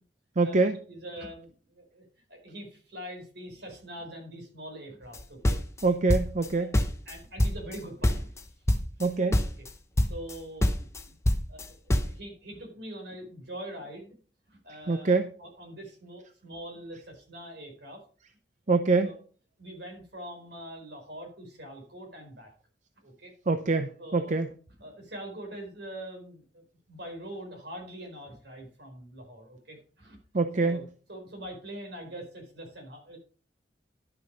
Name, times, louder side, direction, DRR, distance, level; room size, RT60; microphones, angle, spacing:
voice 1, 0.4-0.8 5.8-6.7 9.0-9.4 14.9-15.3 18.7-19.1 23.5-24.5 30.3-30.8, right 3 dB, 45° right, 9 dB, 0.6 m, -25 dB
voice 2, 0.9-2.0 2.3-5.6 6.6-6.7 7.1-8.3 10.1-11.1 11.5-14.1 14.5-18.0 19.0-19.1 19.6-22.5 23.0-23.3 24.0-24.4 24.8-26.6 26.9-30.2 30.5-33.2, right 1 dB, 70° right, 2 dB, 4.4 m, -43 dB
sound 1, 5.1-6.5 6.7-7.8 8.0-8.4 8.7-9.1 9.3-9.7 10.0-10.4 10.6-12.2, left 1 dB, 15° left, 0.9 m, -25 dB
11.0 x 6.7 x 5.3 m, 0.41 s
head